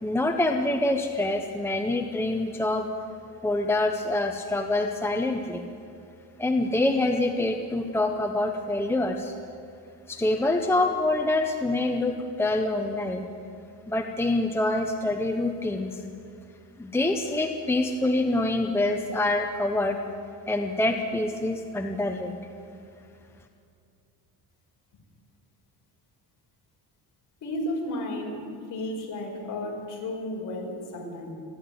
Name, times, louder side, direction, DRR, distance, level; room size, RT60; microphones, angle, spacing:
voice 1, 0.0-2.9 3.4-5.6 6.4-9.3 10.1-13.3 13.9-16.0 16.8-20.0 20.5-22.4, left 2 dB, 5° left, 4 dB, 0.9 m, -26 dB
voice 2, 27.4-28.4 28.7-31.3, left 1 dB, 50° left, 0 dB, 5.3 m, -33 dB
29.5 x 11.0 x 9.6 m, 2.5 s
cardioid pair, 160°, 40 cm